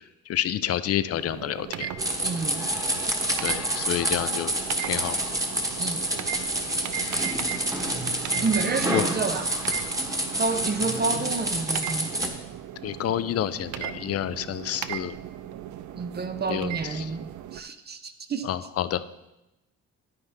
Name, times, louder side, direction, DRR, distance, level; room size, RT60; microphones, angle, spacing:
voice 1, 0.3-1.9 3.4-4.5 4.8-5.2 8.9-9.0 12.8-15.2 16.5-17.1 18.4-19.0, left 11 dB, 55° left, 0.5 m, -29 dB
sound 1, 1.1-17.6, right 11 dB, 70° right, 0.5 m, -37 dB
sound 2, 2.0-12.3, right 1 dB, 10° right, 1.3 m, -28 dB
voice 2, 2.2-2.7 5.8-6.0 8.4-9.5 10.4-12.1 16.0-18.5, right 4 dB, 35° right, 0.7 m, -29 dB
9.5 x 9.5 x 3.5 m
cardioid pair, 90°, 30 cm